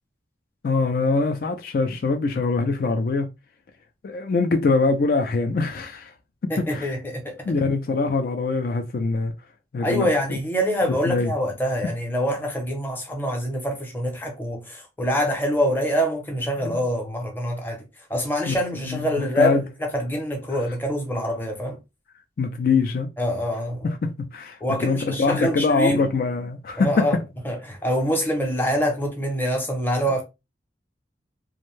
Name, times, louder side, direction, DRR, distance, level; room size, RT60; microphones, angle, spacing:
voice 1, 0.6-3.3 4.0-6.1 6.4-6.9 7.5-9.3 9.7-10.4 10.9-11.3 16.6-16.8 18.5-18.6 18.9-19.6 22.4-23.1 23.8-27.2, left 3 dB, 50° left, 0.3 m, -23 dB
voice 2, 6.5-7.5 9.8-17.8 18.1-21.8 23.2-23.9 24.6-26.1 26.8-27.2 27.4-30.2, equal, 10° left, 0.6 m, -25 dB
2.5 x 2.1 x 3.0 m
head